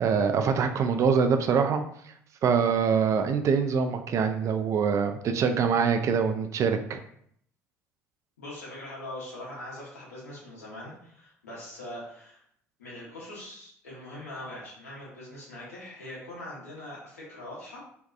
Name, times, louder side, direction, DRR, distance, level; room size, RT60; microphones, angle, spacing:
voice 1, 0.0-1.8 2.4-7.0, right 6 dB, 40° right, 6 dB, 0.3 m, -24 dB
voice 2, 8.4-12.4 12.8-17.8, left 1 dB, 80° left, -6 dB, 0.9 m, -42 dB
2.6 x 2.2 x 2.3 m, 0.66 s
hypercardioid pair, 65°, 8 cm